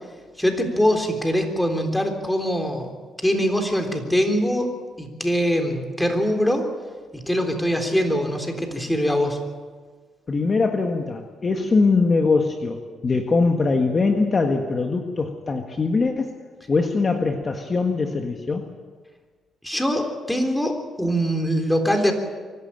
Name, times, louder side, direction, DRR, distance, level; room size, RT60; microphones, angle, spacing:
voice 1, 0.4-2.9 3.2-4.7 5.0-6.7 7.1-9.4 19.6-22.1, equal, 5° left, 4 dB, 3.7 m, -23 dB
voice 2, 10.3-16.3 16.7-18.7, left 4 dB, 35° left, 4 dB, 1.7 m, -22 dB
25.0 x 12.0 x 8.9 m, 1.5 s
cardioid pair, 90°, 0 cm